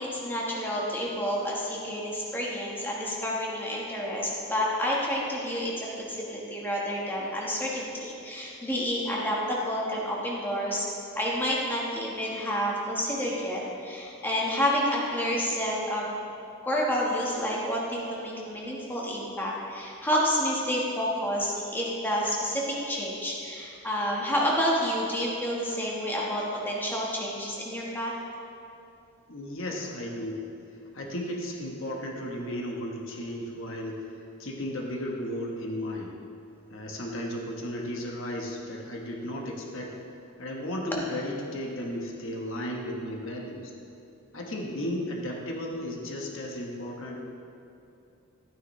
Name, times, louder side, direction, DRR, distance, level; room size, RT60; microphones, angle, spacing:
voice 1, 0.0-10.8 11.2-16.1 16.6-28.1, equal, 10° left, -4 dB, 1.3 m, -29 dB
voice 2, 29.3-30.4 30.9-36.1 36.7-39.9 40.4-43.7 44.3-47.2, left 1 dB, 65° left, 0 dB, 1.1 m, -34 dB
12.5 x 9.7 x 3.1 m, 2.7 s
head